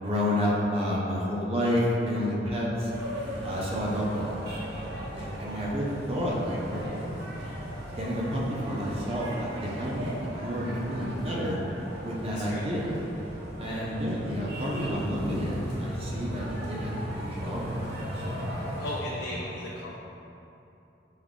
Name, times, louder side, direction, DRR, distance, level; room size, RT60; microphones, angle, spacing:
voice 1, 0.0-2.9 3.4-4.4 4.7-6.8 8.0-11.6 12.0-12.9 13.6-17.9 18.1-18.5 19.4-19.5, equal, 35° right, -5 dB, 0.6 m, -30 dB
sound 1, 2.9-19.0, equal, 65° right, 1.0 m, -37 dB
voice 2, 12.3-12.7 13.6-13.9 18.8-19.9, left 1 dB, 90° left, -3 dB, 0.4 m, -37 dB
5.2 x 2.3 x 3.7 m, 2.9 s
head